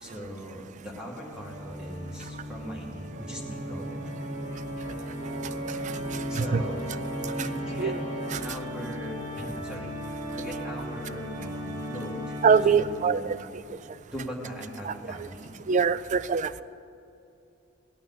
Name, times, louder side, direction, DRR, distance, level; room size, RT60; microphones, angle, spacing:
voice 1, 0.0-4.0 6.3-6.9 7.3-8.0 8.4-13.4 14.1-15.5, equal, 5° right, -2 dB, 1.6 m, -40 dB
Organ, 1.2-13.0, equal, 60° right, 2.5 m, -35 dB
voice 2, 12.4-13.4 14.9-15.0 15.7-16.6, right 6 dB, 35° right, 16 dB, 0.3 m, -23 dB
16.5 x 11.5 x 3.9 m, 2.8 s
head